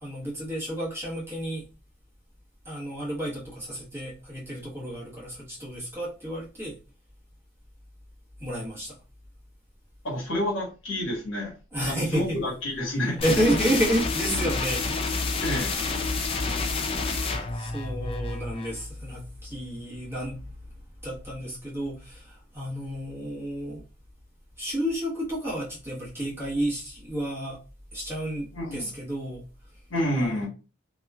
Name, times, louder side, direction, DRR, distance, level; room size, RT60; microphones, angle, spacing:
voice 1, 0.0-1.6 2.6-6.8 8.4-9.0 11.7-12.4 13.2-15.4 17.5-20.4 21.0-23.8 24.6-27.6 27.9-29.4 30.1-30.4, equal, 10° right, 1.1 m, -31 dB
voice 2, 10.0-11.5 11.9-13.5 15.4-15.8 28.5-28.9 29.9-30.5, left 1 dB, 65° left, 1.2 m, -29 dB
sound 1, 13.2-18.8, left 4 dB, 25° left, 0.4 m, -29 dB
2.9 x 2.4 x 2.2 m
head